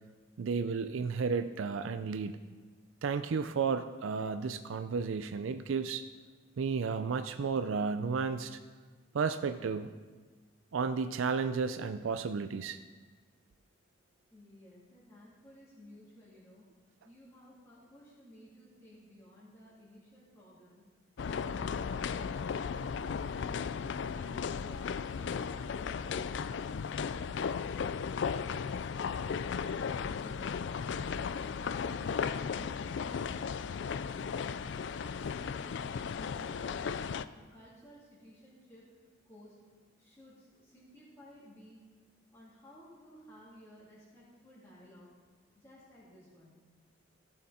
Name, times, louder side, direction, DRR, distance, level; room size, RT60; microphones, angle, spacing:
voice 1, 0.4-2.4 3.0-6.0 6.6-8.6 9.1-9.9 10.7-12.8, right 5 dB, 75° right, 10 dB, 0.4 m, -33 dB
voice 2, 14.3-16.7 17.0-20.8 28.4-29.5 29.9-31.6 34.1-34.5 34.8-38.8 39.3-39.6 40.0-41.8 42.3-45.1 45.5-46.6, equal, 15° left, -11 dB, 3.3 m, -56 dB
sound 1, 21.2-37.3, left 6 dB, 60° left, 0.3 m, -35 dB
16.0 x 6.6 x 4.2 m, 1.4 s
head